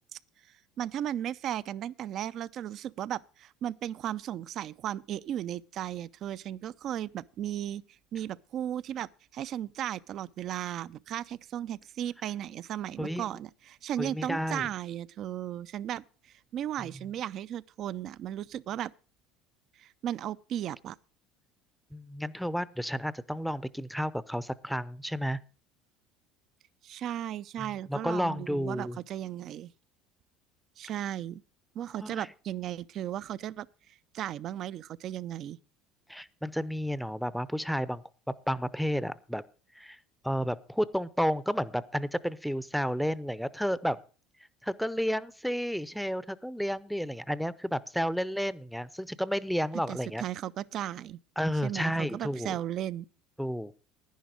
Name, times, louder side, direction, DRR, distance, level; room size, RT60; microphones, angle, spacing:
voice 1, 0.8-7.8 8.1-18.9 19.8-21.0 26.8-29.7 30.8-31.4 31.7-33.7 34.1-35.6 49.9-51.2 51.6-53.1, right 11 dB, 50° right, 0.4 m, -35 dB
voice 2, 14.0-14.7 16.8-16.9 21.9-25.4 27.6-29.0 32.0-32.3 36.1-38.0 38.5-39.4 39.8-40.0 40.2-44.0 44.6-50.2 51.4-52.6 53.4-53.8, equal, ahead, 0.6 m, -31 dB
10.5 x 10.5 x 5.0 m
supercardioid pair, 95°, 0 cm